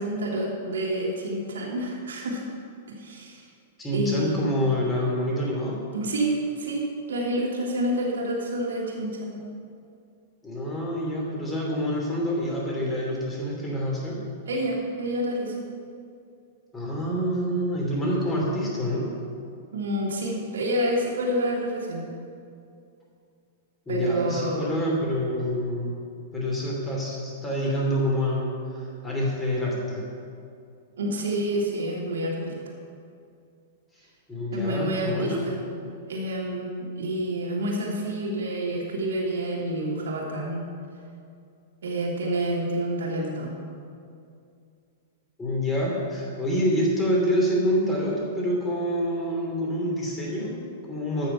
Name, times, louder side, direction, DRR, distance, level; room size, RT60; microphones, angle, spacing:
voice 1, 0.0-2.5 2.9-3.4 3.9-4.4 5.9-9.4 14.5-15.5 19.7-22.1 23.9-24.7 31.0-32.5 34.5-35.6 36.1-40.6 41.8-43.5, right 1 dB, 60° right, -2 dB, 1.8 m, -28 dB
voice 2, 3.8-5.8 10.4-14.2 16.7-19.1 23.9-25.9 26.3-30.1 34.3-35.4 45.4-51.3, equal, 15° left, -4 dB, 3.0 m, -27 dB
13.5 x 5.9 x 5.7 m, 2.4 s
figure-of-eight pair, 100°, 0 cm